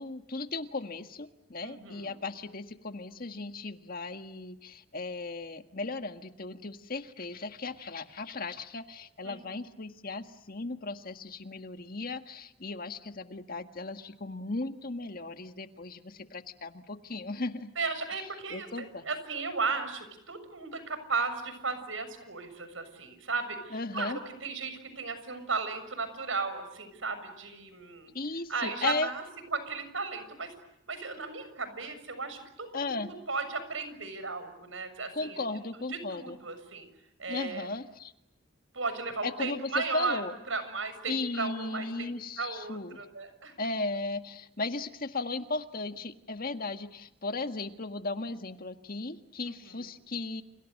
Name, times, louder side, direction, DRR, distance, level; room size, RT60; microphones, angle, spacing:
voice 1, 0.0-17.7 18.5-19.0 23.7-24.2 28.1-29.1 32.7-33.1 35.1-36.4 37.3-38.1 39.2-40.3 41.1-43.0 43.6-50.4, left 3 dB, 45° left, 8 dB, 1.7 m, -36 dB
voice 2, 1.6-2.2 9.2-9.6 17.7-28.1 28.5-29.2 29.5-30.5 30.9-35.6 35.9-36.9 37.2-37.7 38.7-40.2 40.5-41.9 42.4-43.5 49.5-49.8, right 4 dB, 80° right, 11 dB, 6.8 m, -35 dB
30.0 x 30.0 x 6.5 m, 0.83 s
head